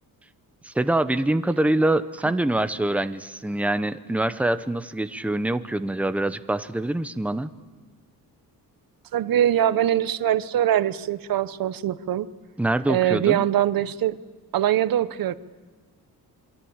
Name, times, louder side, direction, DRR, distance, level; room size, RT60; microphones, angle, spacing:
voice 1, 0.6-7.5 12.6-13.4, right 1 dB, 5° right, 11 dB, 0.7 m, -24 dB
voice 2, 9.1-12.3 12.9-14.2 14.5-15.3, right 11 dB, 65° right, 14 dB, 1.0 m, -22 dB
27.0 x 23.0 x 8.8 m, 1.3 s
cardioid pair, 150°, 37 cm